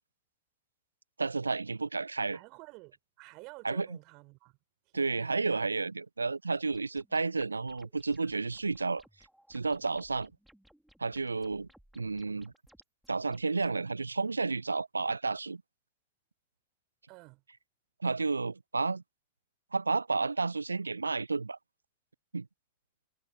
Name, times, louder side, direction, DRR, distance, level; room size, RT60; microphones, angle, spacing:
voice 1, 1.2-2.4 3.6-4.0 4.9-9.0 9.5-10.3 11.0-11.7 11.9-12.5 13.1-15.6 18.0-19.0 19.7-21.6 22.3-22.5, right 4 dB, 80° right, 0.3 m, -31 dB
voice 2, 2.3-4.6 4.9-5.4 17.1-17.4, right 26 dB, 40° right, 6.7 m, -51 dB
sound 1, 6.7-13.8, right 1 dB, ahead, 4.2 m, -63 dB
figure-of-eight pair, 90°, 0 cm